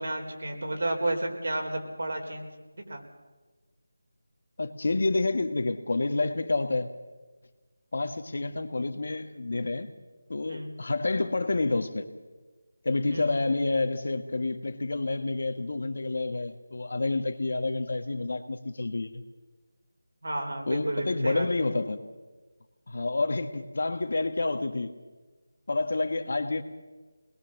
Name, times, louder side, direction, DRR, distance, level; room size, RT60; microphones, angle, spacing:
voice 1, 0.0-2.5 2.9-3.0 10.5-10.7 13.1-13.3 20.2-21.5, right 1 dB, 70° right, 2 dB, 4.2 m, -31 dB
voice 2, 4.6-6.9 7.9-9.9 10.3-12.1 12.8-19.2 20.7-22.0 22.9-25.0 25.7-26.6, left 3 dB, 60° left, 8 dB, 1.7 m, -29 dB
22.0 x 20.5 x 6.6 m, 1.2 s
figure-of-eight pair, 165°, 0 cm